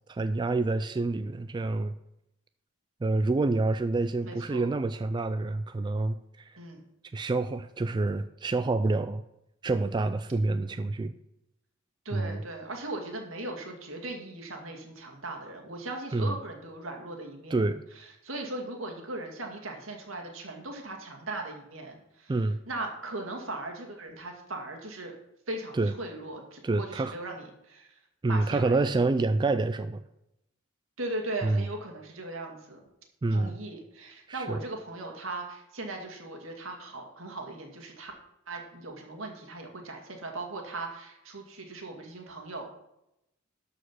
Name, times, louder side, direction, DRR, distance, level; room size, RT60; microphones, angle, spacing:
voice 1, 0.1-2.0 3.0-6.6 7.1-9.2 9.6-11.1 12.1-12.4 16.1-16.4 17.5-17.8 22.3-22.6 25.7-25.9 26.6-27.1 28.2-30.1 31.4-31.7 33.2-33.6 34.3-34.6, right 3 dB, 20° right, 11 dB, 0.3 m, -27 dB
voice 2, 4.2-4.7 6.6-6.8 12.0-17.6 18.0-22.3 22.7-25.2 25.5-28.0 28.3-29.0 31.0-32.9 33.3-38.1 38.5-42.7, right 2 dB, 75° right, 2 dB, 2.2 m, -38 dB
12.5 x 4.9 x 6.1 m, 0.85 s
head